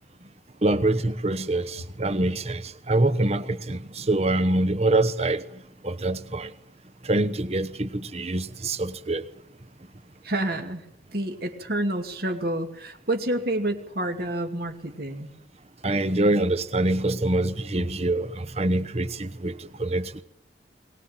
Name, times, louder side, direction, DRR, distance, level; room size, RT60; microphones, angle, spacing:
voice 1, 0.6-5.4 5.8-6.5 7.0-9.2 15.8-20.2, right 2 dB, 35° right, 11 dB, 1.1 m, -25 dB
voice 2, 10.2-10.8 11.1-15.3, right 1 dB, 55° right, 4 dB, 2.5 m, -28 dB
22.0 x 19.5 x 9.0 m, 0.76 s
head